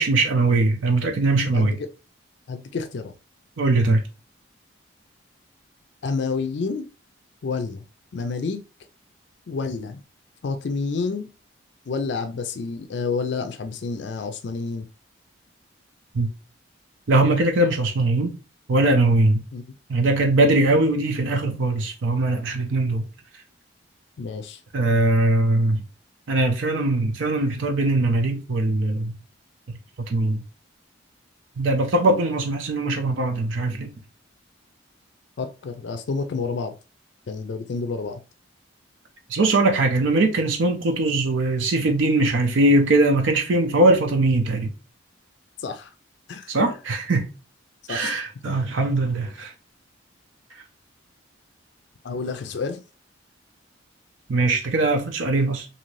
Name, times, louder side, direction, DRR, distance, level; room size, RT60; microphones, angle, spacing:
voice 1, 0.0-1.8 3.6-4.0 16.1-16.3 17.1-18.3 18.7-19.4 19.9-23.1 24.7-25.8 26.3-29.1 30.1-30.4 31.6-33.9 39.3-44.7 46.5-47.3 47.9-49.5 54.3-55.7, right 2 dB, 70° right, 0.5 m, -21 dB
voice 2, 1.5-1.9 2.5-3.1 6.0-6.9 7.4-7.8 8.1-8.6 9.5-10.0 10.4-11.3 11.9-14.9 19.5-19.6 24.2-24.6 35.4-36.7 37.3-38.2 45.6-45.9 46.3-46.5 47.9-48.2 52.0-52.8, left 4 dB, 60° left, 0.4 m, -29 dB
2.7 x 2.6 x 3.1 m
head